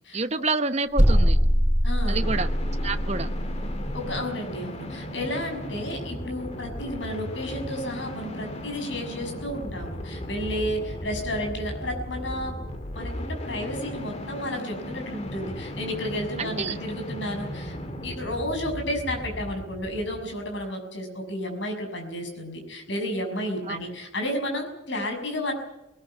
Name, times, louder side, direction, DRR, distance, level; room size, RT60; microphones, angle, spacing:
voice 1, 0.1-1.4 2.1-2.5 2.8-3.3 16.4-16.8 23.7-23.8, right 3 dB, 35° right, 10 dB, 0.9 m, -28 dB
sound 1, 1.0-4.0, equal, 5° right, 7.1 m, -22 dB
voice 2, 1.8-2.2 3.9-12.6 12.9-17.8 18.0-25.5, left 1 dB, 70° left, 4 dB, 6.3 m, -32 dB
sound 2, 2.2-20.7, equal, 35° left, 2.0 m, -36 dB
20.0 x 19.5 x 8.9 m, 0.91 s
head